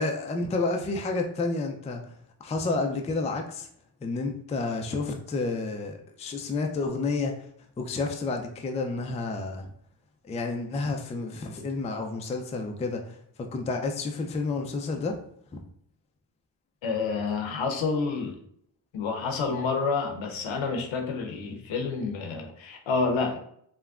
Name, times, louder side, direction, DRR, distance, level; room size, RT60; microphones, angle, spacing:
voice 1, 0.0-2.0 2.4-3.7 4.0-7.3 7.8-9.7 10.2-15.2 15.5-15.6, left 3 dB, 15° left, 3 dB, 0.3 m, -30 dB
voice 2, 16.8-18.4 18.9-23.4, left 4 dB, 75° left, 3 dB, 0.7 m, -29 dB
3.4 x 2.2 x 2.3 m, 0.67 s
cardioid pair, 60°, 47 cm